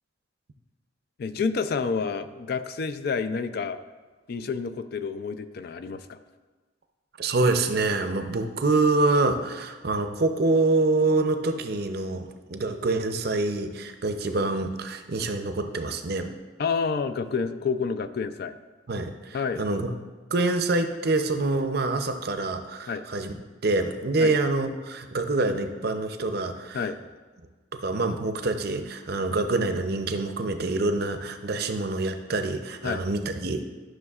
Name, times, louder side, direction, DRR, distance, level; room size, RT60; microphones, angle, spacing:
voice 1, 1.2-3.8 4.3-6.2 16.6-18.5 19.3-19.7 22.9-23.0 24.2-24.3 26.7-27.0 32.8-33.0, left 5 dB, 50° left, 11 dB, 0.4 m, -29 dB
voice 2, 7.2-16.3 18.9-19.9 20.3-23.4 23.6-26.9 27.7-33.7, right 2 dB, 55° right, 7 dB, 0.6 m, -26 dB
12.0 x 6.3 x 2.4 m, 1.3 s
head